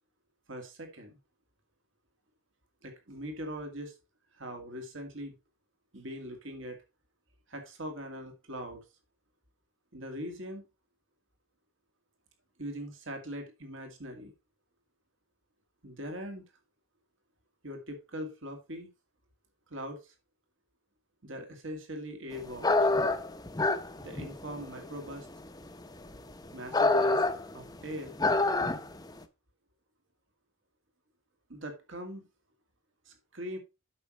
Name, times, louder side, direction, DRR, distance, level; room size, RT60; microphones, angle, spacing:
voice 1, 0.5-1.2 2.8-3.9 4.3-5.4 5.9-6.8 7.5-8.8 9.9-10.7 12.6-14.3 15.8-16.4 17.6-18.9 19.7-20.1 21.2-22.9 24.0-25.3 26.5-27.2 27.5-28.1 31.5-32.2 33.1-33.6, equal, 65° right, 5 dB, 2.3 m, -41 dB
sound 1, 22.6-29.1, left 2 dB, 20° left, 0.8 m, -27 dB
8.6 x 6.5 x 4.5 m, 0.27 s
head